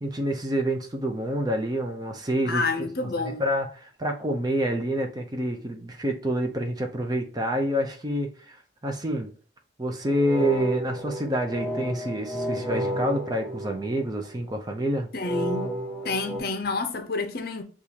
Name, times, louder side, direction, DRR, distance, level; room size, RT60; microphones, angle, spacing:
voice 1, 0.0-2.9 3.2-8.6 8.8-9.3 9.8-15.1, equal, 20° right, 0.5 m, -27 dB
voice 2, 2.5-3.4 15.1-15.8 16.0-17.6, left 3 dB, 50° left, 0.6 m, -29 dB
sound 1, 10.0-14.3 15.2-16.4, right 1 dB, 10° left, 0.9 m, -32 dB
6.6 x 2.4 x 2.8 m
head